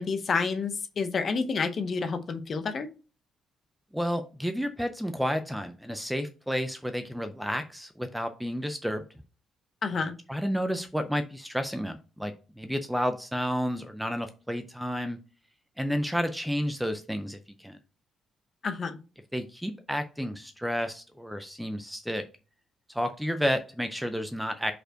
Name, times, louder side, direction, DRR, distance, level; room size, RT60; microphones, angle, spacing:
voice 1, 0.0-2.9 9.8-10.1 18.6-19.0, left 4 dB, 35° left, 9 dB, 0.7 m, -29 dB
voice 2, 3.9-9.0 10.3-15.2 15.8-17.8 19.3-22.2 22.9-24.7, equal, ahead, 8 dB, 0.4 m, -31 dB
5.3 x 4.3 x 4.4 m, 0.35 s
cardioid pair, 175°, 0 cm